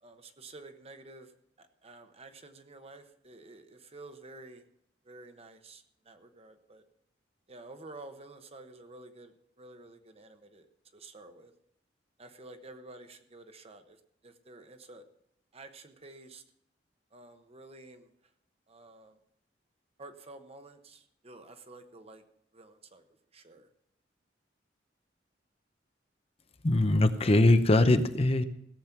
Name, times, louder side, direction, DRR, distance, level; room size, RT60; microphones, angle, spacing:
voice 1, 0.0-1.3 1.6-4.6 5.0-6.8 7.5-11.5 12.2-15.1 15.5-16.4 17.1-18.3 18.7-19.2 20.0-22.2 22.5-23.7, right 2 dB, 35° right, 8 dB, 1.1 m, -51 dB
voice 2, 26.6-28.4, left 2 dB, 35° left, 10 dB, 0.7 m, -22 dB
17.0 x 7.5 x 5.9 m, 0.75 s
head